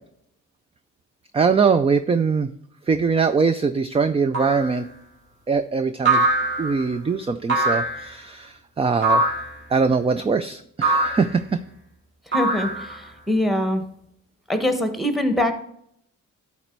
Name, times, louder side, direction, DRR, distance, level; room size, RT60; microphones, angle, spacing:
voice 1, 1.3-2.5 2.9-4.9 5.5-6.3 6.6-9.2 9.7-11.6, right 5 dB, 20° right, 10 dB, 0.3 m, -22 dB
sound 1, 4.3-4.8 6.0-6.8 7.5-8.1 9.0-9.6 10.8-11.3 12.3-13.1, right 2 dB, 40° right, 2.9 m, -22 dB
voice 2, 12.3-13.8 14.5-15.5, left 1 dB, ahead, 8 dB, 1.2 m, -23 dB
12.5 x 4.2 x 4.5 m, 0.71 s
cardioid pair, 125°, 32 cm